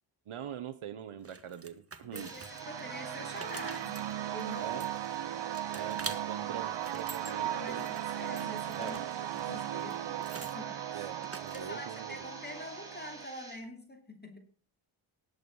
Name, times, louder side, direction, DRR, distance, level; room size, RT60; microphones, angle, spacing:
voice 1, 0.3-2.3 4.6-4.9 5.7-7.9 8.8-9.0 10.9-12.2, right 9 dB, 80° right, 8 dB, 1.3 m, -43 dB
sound 1, 1.2-2.8 3.2-5.2 5.5-6.2 6.6-7.3 7.7-10.6 11.2-11.9, right 4 dB, 30° right, 1.5 m, -46 dB
voice 2, 2.0-4.1 4.3-4.7 5.2-5.4 7.3-11.1 11.5-14.4, left 1 dB, 20° left, 5 dB, 3.0 m, -46 dB
sound 2, 2.1-13.6, right 2 dB, 5° right, 5.6 m, -50 dB
sound 3, 2.2-13.2, right 12 dB, 60° right, 0.6 m, -37 dB
19.0 x 8.2 x 5.5 m, 0.39 s
wide cardioid pair, 145°, 50 cm